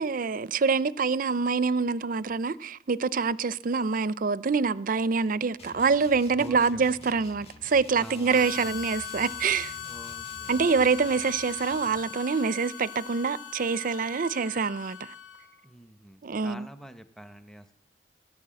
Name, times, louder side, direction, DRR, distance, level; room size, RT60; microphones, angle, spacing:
voice 1, 0.0-9.7 10.5-15.0 16.2-16.7, right 5 dB, 50° right, 0.5 m, -26 dB
sound 1, 5.6-12.1, left 2 dB, 35° left, 1.4 m, -49 dB
voice 2, 6.4-6.9 7.9-8.8 9.9-10.7 15.6-17.7, equal, 5° left, 0.8 m, -46 dB
Harmonica, 8.3-15.6, left 8 dB, 85° left, 2.5 m, -40 dB
18.0 x 10.5 x 7.6 m
head